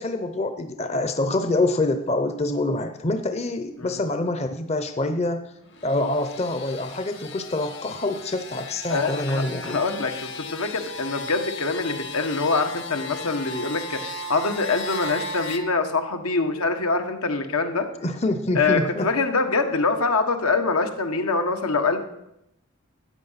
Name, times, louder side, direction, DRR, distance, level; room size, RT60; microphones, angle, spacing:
voice 1, 0.0-5.5 5.8-9.8 18.0-19.1, left 2 dB, 30° left, 8 dB, 0.7 m, -26 dB
sound 1, 5.6-15.6, left 2 dB, 55° left, 1.3 m, -36 dB
voice 2, 8.9-17.9 18.5-22.0, left 3 dB, 85° left, 6 dB, 1.5 m, -24 dB
13.5 x 9.0 x 5.7 m, 0.83 s
head